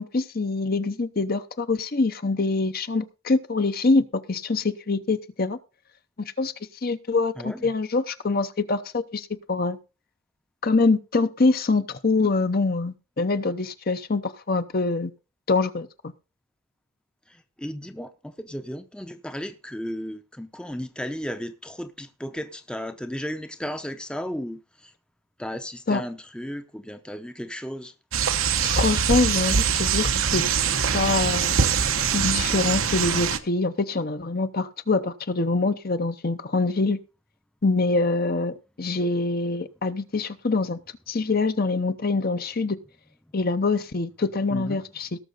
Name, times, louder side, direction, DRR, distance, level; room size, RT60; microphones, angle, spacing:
voice 1, 0.0-5.6 6.4-6.5 6.8-9.8 10.6-15.1 15.5-16.1 25.9-26.0 28.6-30.4 30.9-31.6 32.1-37.0 37.6-40.8 41.1-42.8 43.3-45.1, left 3 dB, 45° left, 0.8 m, -24 dB
voice 2, 7.4-7.7 17.6-24.9 25.4-27.9 44.5-44.8, equal, 5° left, 0.7 m, -34 dB
sound 1, 28.1-33.4, right 6 dB, 90° right, 1.0 m, -23 dB
18.0 x 6.6 x 4.0 m
head